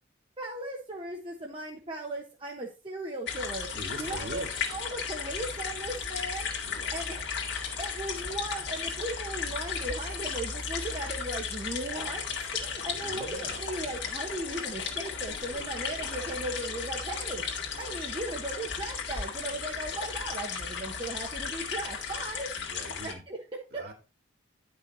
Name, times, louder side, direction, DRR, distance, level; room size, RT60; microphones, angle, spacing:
voice 1, 0.4-3.7 4.0-4.4 4.7-6.5 6.9-7.3 7.8-12.2 12.6-17.4 17.8-22.5 23.0-23.4 23.7-23.9, right 1 dB, 25° right, -1 dB, 1.2 m, -37 dB
sound 1, 3.3-23.1, left 6 dB, 60° left, 2.0 m, -35 dB
voice 2, 3.7-4.8 6.6-7.0 12.9-13.7 16.1-16.5 22.6-23.2 23.7-23.9, equal, 50° right, 2 dB, 2.3 m, -43 dB
10.5 x 5.7 x 4.1 m, 0.31 s
head